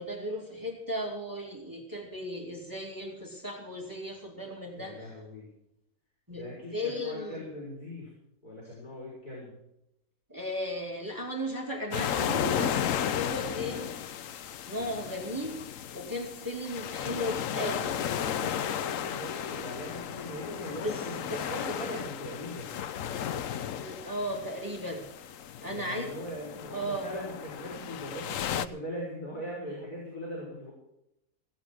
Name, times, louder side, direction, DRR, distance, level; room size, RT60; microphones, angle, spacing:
voice 1, 0.0-5.1 6.3-6.4 6.7-7.4 10.3-14.1 14.7-15.6 15.9-17.8 20.8-21.0 21.3-21.4 23.7-25.0 25.6-26.1 26.7-27.1, equal, 15° right, 0 dB, 2.7 m, -36 dB
voice 2, 4.7-5.5 6.3-8.1 8.4-9.6 17.5-22.7 25.7-30.7, equal, 85° left, -4 dB, 5.0 m, -40 dB
sound 1, 11.9-28.7, left 9 dB, 65° left, 1.0 m, -34 dB
16.5 x 8.9 x 6.2 m, 0.83 s
omnidirectional pair, 1.6 m